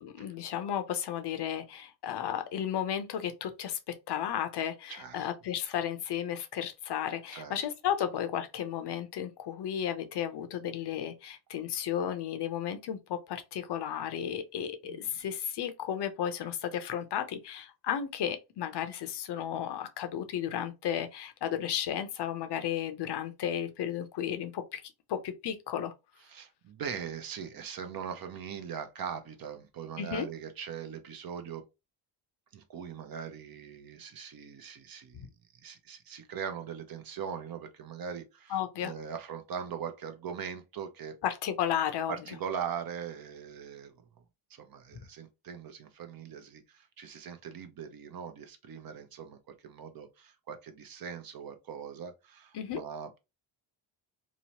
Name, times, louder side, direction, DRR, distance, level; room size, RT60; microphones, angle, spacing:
voice 1, 0.0-24.8 25.1-25.9 30.0-30.3 35.1-35.3 38.5-38.9 41.2-42.1 52.5-52.8, left 9 dB, 55° left, 0.6 m, -34 dB
voice 2, 4.9-5.3 7.3-7.6 14.8-15.2 26.3-31.6 32.5-35.3 35.6-41.2 42.1-44.1 44.5-53.2, right 7 dB, 45° right, 0.6 m, -41 dB
2.9 x 2.0 x 2.9 m
cardioid pair, 85°, 50 cm